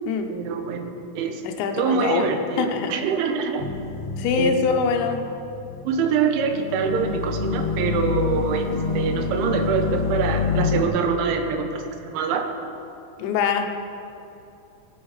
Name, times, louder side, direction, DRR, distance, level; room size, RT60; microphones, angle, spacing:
voice 1, 0.3-1.4 1.7-3.7 4.4-4.6 5.9-12.5, right 5 dB, 85° right, 5 dB, 3.4 m, -25 dB
voice 2, 1.4-2.3 2.6-3.0 4.2-5.3 13.2-13.7, left 6 dB, 80° left, 5 dB, 3.1 m, -23 dB
sound 1, 3.6-10.8, left 5 dB, 55° left, 2.6 m, -27 dB
16.0 x 10.5 x 4.9 m, 2.8 s
omnidirectional pair, 5.2 m